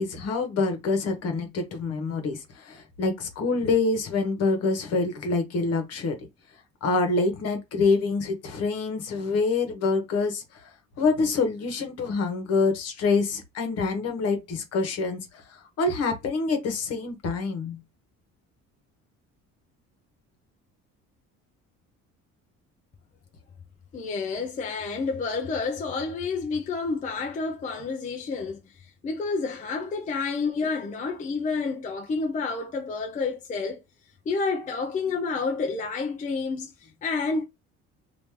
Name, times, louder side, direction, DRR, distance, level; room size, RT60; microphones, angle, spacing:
voice 1, 0.0-6.2 6.8-10.7 11.0-15.3 15.8-17.8, left 3 dB, 55° left, 1.2 m, -26 dB
voice 2, 23.9-28.6 29.0-33.8 34.3-37.4, left 4 dB, 25° left, 0.5 m, -29 dB
3.0 x 2.6 x 3.5 m
cardioid pair, 150°, 29 cm